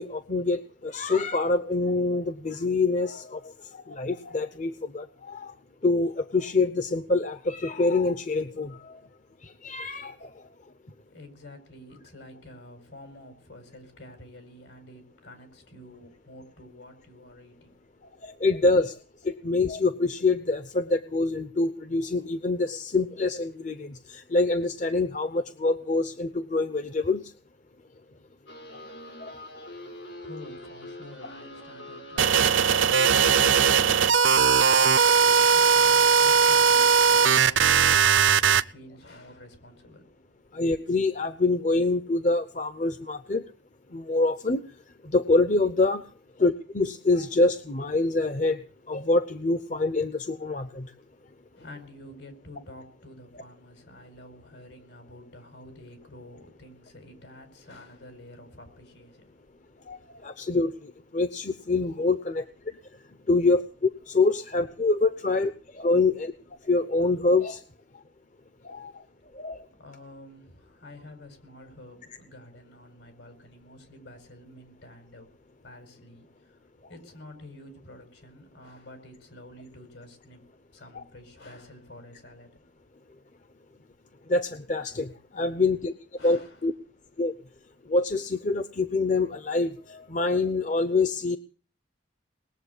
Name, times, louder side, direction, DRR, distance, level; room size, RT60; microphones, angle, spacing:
voice 1, 0.0-3.4 3.9-5.5 5.8-9.0 9.6-10.3 18.2-18.9 19.2-27.2 29.2-29.3 34.8-34.9 40.5-43.4 43.9-44.6 45.1-46.0 46.4-48.6 48.9-50.9 59.9-60.0 60.2-60.7 61.1-62.4 63.3-63.6 64.1-65.5 65.8-66.3 66.7-67.6 68.7-68.9 69.4-69.6 80.9-81.0 84.3-85.1 85.3-85.9 86.2-86.7 87.2-87.3 87.9-91.4, left 3 dB, 40° left, 0.8 m, -25 dB
voice 2, 11.1-17.8 30.2-40.1 51.5-59.5 66.1-66.2 69.8-75.3 75.6-76.6 76.9-80.4 80.7-82.5 85.3-85.6 86.2-86.6, left 1 dB, 75° left, 5.0 m, -49 dB
sound 1, 28.5-33.7, left 1 dB, 90° left, 5.8 m, -43 dB
sound 2, 32.2-38.6, right 6 dB, 85° right, 0.7 m, -19 dB
20.5 x 7.8 x 8.3 m
head